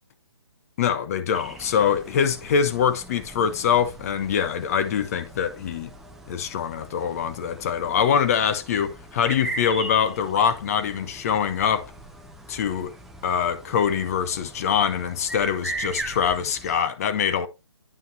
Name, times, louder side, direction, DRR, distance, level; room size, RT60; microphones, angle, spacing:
voice 1, 0.8-5.9 6.3-11.9 12.5-12.9 13.2-17.5, left 7 dB, 35° left, 0.7 m, -24 dB
sound 1, 1.3-16.8, right 2 dB, ahead, 0.7 m, -40 dB
9.3 x 5.5 x 3.2 m
figure-of-eight pair, 140°, 14 cm